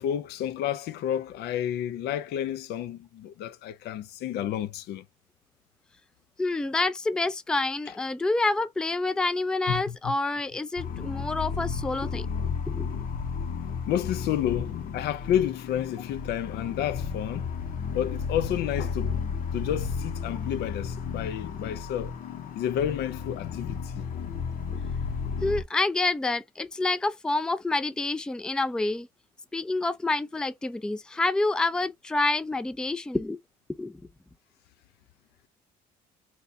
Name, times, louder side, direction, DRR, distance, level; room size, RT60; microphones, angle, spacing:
voice 1, 0.0-5.0 9.7-10.1 13.9-17.5 17.9-19.1 19.5-22.1 22.6-24.1, left 10 dB, 75° left, 0.5 m, -30 dB
voice 2, 6.4-12.3 12.7-12.9 25.4-29.1 29.5-33.4 33.8-34.0, left 2 dB, 5° left, 0.3 m, -28 dB
sound 1, 10.8-25.6, left 6 dB, 55° left, 0.9 m, -33 dB
2.8 x 2.3 x 4.0 m
cardioid pair, 110°, 17 cm